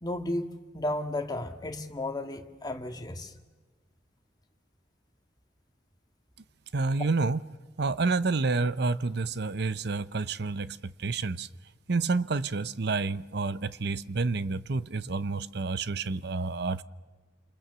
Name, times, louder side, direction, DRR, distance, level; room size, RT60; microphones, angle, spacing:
voice 1, 0.0-3.3, left 1 dB, 25° left, 5 dB, 1.8 m, -33 dB
voice 2, 6.7-7.4 7.8-11.5 11.9-16.8, right 3 dB, 65° right, 15 dB, 0.8 m, -29 dB
29.0 x 27.5 x 6.9 m, 1.3 s
head